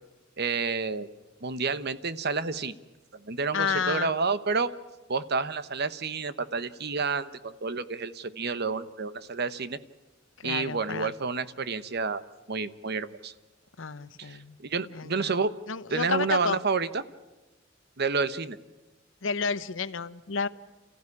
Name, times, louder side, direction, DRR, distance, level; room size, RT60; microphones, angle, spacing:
voice 1, 0.4-1.1 1.4-2.8 3.3-4.7 5.1-9.8 10.4-13.3 14.2-15.5 15.9-17.0 18.0-18.6, right 4 dB, 55° right, 13 dB, 1.0 m, -29 dB
voice 2, 3.5-4.1 10.4-11.1 13.8-14.6 14.9-15.3 15.7-16.6 19.2-20.5, left 5 dB, 80° left, 14 dB, 0.9 m, -31 dB
29.0 x 15.0 x 9.8 m, 1.1 s
head